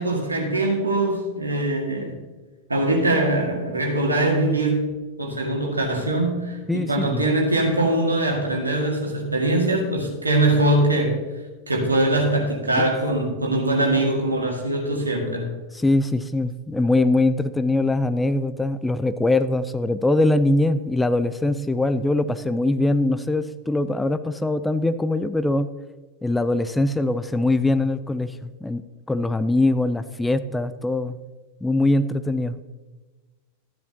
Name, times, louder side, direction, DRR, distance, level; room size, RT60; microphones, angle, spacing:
voice 1, 0.0-2.1 2.7-4.9 5.2-11.2 11.7-15.5, right 1 dB, 80° right, 1 dB, 2.0 m, -22 dB
voice 2, 6.7-7.3 12.8-13.0 15.7-25.7 26.2-28.8 29.1-31.2 31.6-32.6, left 2 dB, 5° left, 12 dB, 0.4 m, -22 dB
13.0 x 10.0 x 2.9 m, 1.3 s
figure-of-eight pair, 90°, 0 cm